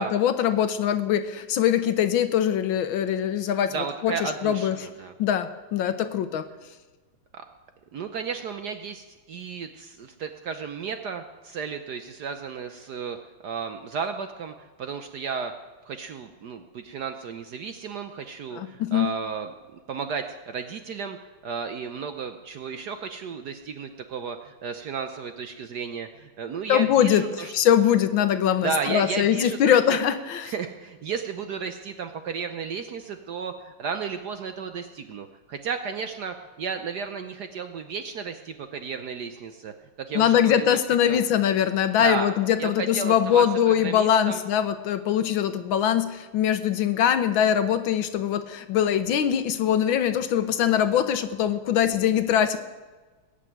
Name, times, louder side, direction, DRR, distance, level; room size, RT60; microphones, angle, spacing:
voice 1, 0.0-3.8 4.0-4.8 5.2-6.5 18.5-19.1 26.7-30.5 40.1-52.6, left 9 dB, 70° left, 11 dB, 1.5 m, -22 dB
voice 2, 3.7-5.1 7.3-7.4 7.9-13.2 13.4-15.5 15.8-21.2 21.4-27.5 28.6-30.0 30.4-39.7 40.0-40.8 41.1-41.3 42.0-42.3 42.6-44.4, right 6 dB, 65° right, 7 dB, 1.1 m, -33 dB
20.5 x 6.8 x 9.2 m, 1.3 s
omnidirectional pair, 2.4 m